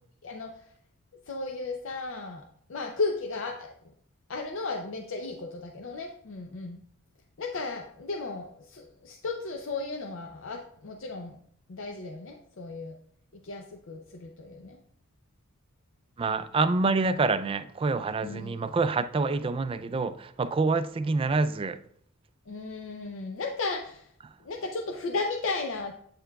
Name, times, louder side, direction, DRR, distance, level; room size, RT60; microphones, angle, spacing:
voice 1, 0.2-0.6 1.3-3.7 4.3-6.8 7.4-11.4 11.7-13.0 13.4-14.8 18.2-18.6 22.5-24.1 24.4-25.9, left 3 dB, 65° left, 3 dB, 0.6 m, -35 dB
voice 2, 16.2-21.8, right 3 dB, 25° right, 12 dB, 0.3 m, -27 dB
8.6 x 6.6 x 2.3 m, 0.65 s
head